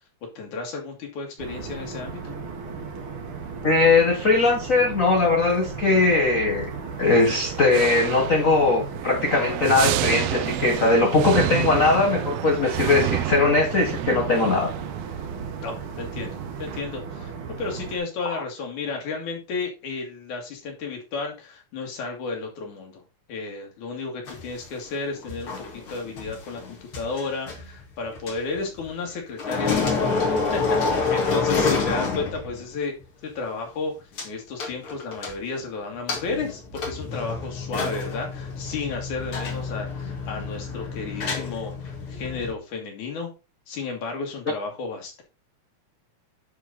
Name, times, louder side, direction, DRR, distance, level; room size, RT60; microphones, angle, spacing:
voice 1, 0.3-2.3 15.6-17.3 17.6-23.0 23.3-30.2 30.5-33.0 33.2-33.9 34.2-43.3 43.7-45.2, left 4 dB, 85° left, 3.5 m, -33 dB
sound 1, 1.4-18.0, right 5 dB, 55° right, 1.8 m, -36 dB
voice 2, 3.6-6.7 7.0-14.7, left 3 dB, 70° left, 0.7 m, -20 dB
sound 2, 7.1-16.8, right 13 dB, 80° right, 1.5 m, -30 dB
sound 3, 24.3-29.1 29.4-32.8 33.0-33.1 34.2-34.3 34.6-35.6 36.1-42.5, left 4 dB, 50° left, 2.5 m, -28 dB
10.5 x 3.9 x 4.0 m
omnidirectional pair, 3.4 m